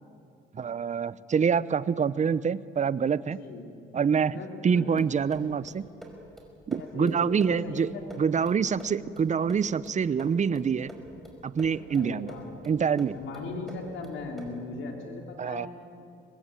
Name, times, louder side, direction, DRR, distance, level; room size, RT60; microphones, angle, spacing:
voice 1, 0.5-3.4 3.9-5.8 6.7-7.9 8.2-10.9 11.4-12.3 12.6-13.2 15.4-15.7, right 6 dB, 35° right, 18 dB, 0.7 m, -26 dB
voice 2, 3.2-3.7 4.3-5.0 6.7-8.2 11.9-12.7 13.1-15.7, left 3 dB, 80° left, 2 dB, 3.4 m, -38 dB
sound 1, 5.0-14.7, equal, ahead, 5.3 m, -48 dB
24.5 x 20.0 x 9.1 m, 2.5 s
cardioid pair, 90°, 20 cm